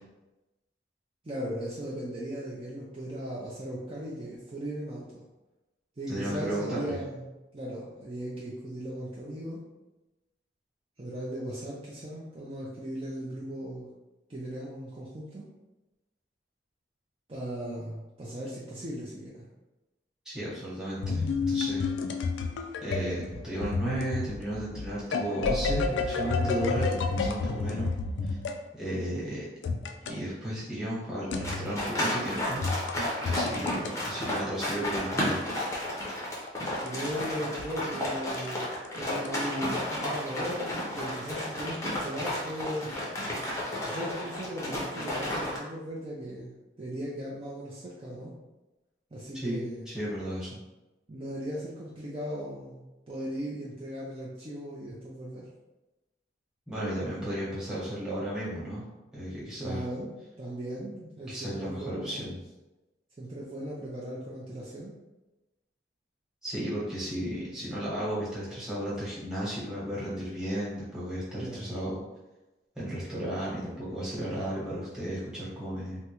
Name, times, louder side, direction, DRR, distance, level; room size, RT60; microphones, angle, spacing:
voice 1, 1.2-5.2 6.0-7.2 7.5-9.6 11.0-13.9 14.3-15.5 17.3-19.4 36.8-42.9 43.8-48.3 49.1-49.9 51.1-55.4 59.6-62.4 63.2-65.0 71.4-71.8, equal, 30° right, -6 dB, 0.4 m, -37 dB
voice 2, 6.1-6.9 20.2-21.9 22.8-27.9 28.2-28.4 28.8-29.5 30.1-32.9 33.2-35.4 49.3-50.6 56.7-58.8 59.1-59.8 61.3-62.3 66.4-72.0 72.8-76.0, right 1 dB, 5° right, -9 dB, 1.0 m, -34 dB
sound 1, 21.0-28.6 29.6-30.2 31.3-31.8 32.6-33.9 35.3-37.3 37.6-37.7 38.3-39.3, left 4 dB, 80° left, 0.3 m, -31 dB
sound 2, 31.4-45.6, left 1 dB, 15° left, 0.6 m, -32 dB
3.4 x 2.1 x 2.9 m, 1.1 s
head